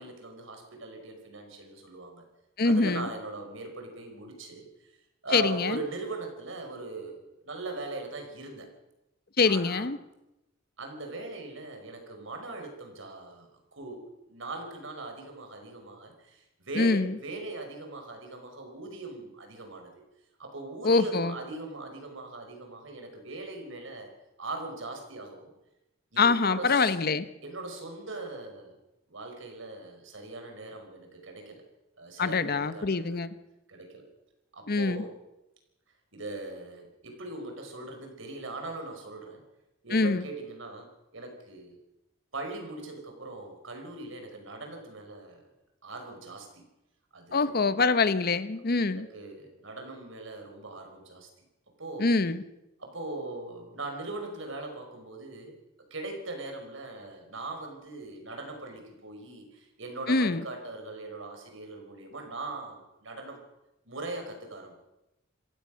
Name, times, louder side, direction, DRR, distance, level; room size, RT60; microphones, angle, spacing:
voice 1, 0.0-2.2 2.6-4.9 5.2-8.7 9.4-9.9 10.8-19.9 20.4-24.1 24.4-25.5 26.1-26.9 27.4-28.8 29.1-31.6 32.0-33.3 33.7-34.0 34.5-35.1 36.1-39.4 39.8-41.8 42.3-45.5 45.8-46.7 47.1-47.7 48.8-51.3 51.8-52.1 52.8-55.6 55.9-63.4 63.9-64.7, right 2 dB, 70° right, 3 dB, 5.3 m, -40 dB
voice 2, 2.6-3.1 5.3-5.8 9.4-10.0 16.7-17.1 20.8-21.3 26.2-27.2 32.2-33.3 34.7-35.0 39.9-40.2 47.3-49.1 52.0-52.4 60.1-60.4, left 3 dB, 50° left, 13 dB, 0.9 m, -24 dB
27.5 x 15.5 x 6.4 m, 0.94 s
head